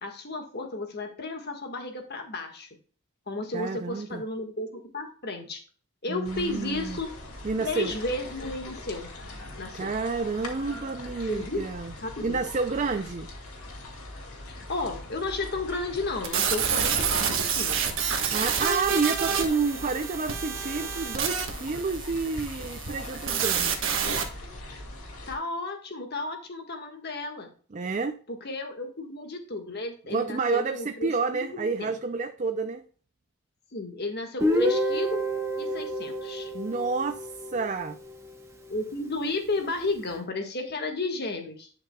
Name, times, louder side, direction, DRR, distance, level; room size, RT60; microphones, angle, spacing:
voice 1, 0.0-2.7 3.3-5.6 6.0-7.1 7.6-9.1 9.6-9.9 11.3-11.6 12.0-12.4 14.5-18.1 25.3-27.5 28.3-32.0 33.7-35.2 35.6-36.5 38.7-41.7, left 2 dB, 50° left, 1.7 m, -33 dB
voice 2, 3.5-4.2 6.1-7.0 7.4-7.9 9.7-11.9 12.2-13.3 18.3-23.9 27.7-28.2 30.1-32.8 36.5-38.0, right 4 dB, 35° right, 0.4 m, -29 dB
sound 1, 6.2-25.3, left 2 dB, 90° left, 2.4 m, -41 dB
sound 2, 16.2-24.2, right 7 dB, 60° right, 1.4 m, -28 dB
Guitar, 34.4-38.2, equal, 15° right, 1.8 m, -29 dB
11.0 x 5.9 x 2.3 m
head